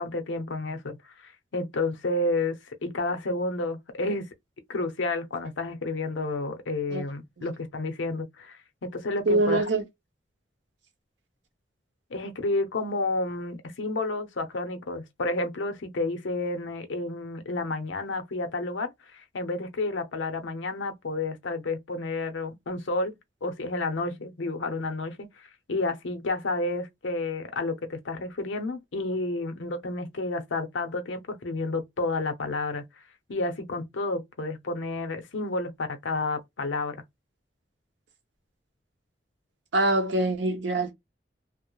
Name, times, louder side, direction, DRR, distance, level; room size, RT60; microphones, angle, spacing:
voice 1, 0.0-4.3 4.7-9.7 12.1-32.8 33.3-37.0, left 2 dB, 90° left, 0.6 m, -31 dB
voice 2, 9.3-9.8 39.7-40.9, right 2 dB, 80° right, 0.7 m, -24 dB
2.3 x 2.0 x 3.0 m
head